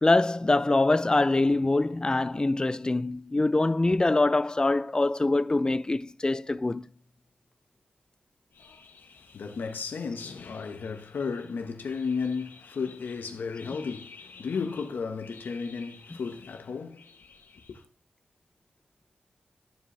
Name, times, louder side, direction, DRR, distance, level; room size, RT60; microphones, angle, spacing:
voice 1, 0.0-6.9 13.6-13.8, left 2 dB, 25° left, 0.5 m, -24 dB
voice 2, 8.5-17.8, left 5 dB, 80° left, 1.4 m, -34 dB
14.0 x 5.0 x 3.4 m
cardioid pair, 55°, 3 cm